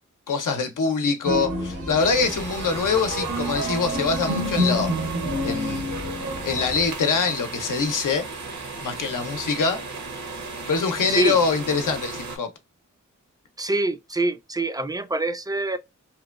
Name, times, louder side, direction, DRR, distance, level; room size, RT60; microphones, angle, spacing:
voice 1, 0.3-4.9 5.4-5.9 6.4-8.2 8.5-9.8 10.7-12.5, left 5 dB, 80° left, 0.6 m, -24 dB
sound 1, 1.2-6.9, equal, 85° right, 1.1 m, -28 dB
sound 2, 2.0-12.4, right 3 dB, 65° right, 0.7 m, -36 dB
voice 2, 13.6-15.8, right 2 dB, 15° right, 0.3 m, -25 dB
2.9 x 2.2 x 2.3 m
cardioid pair, 55°, 31 cm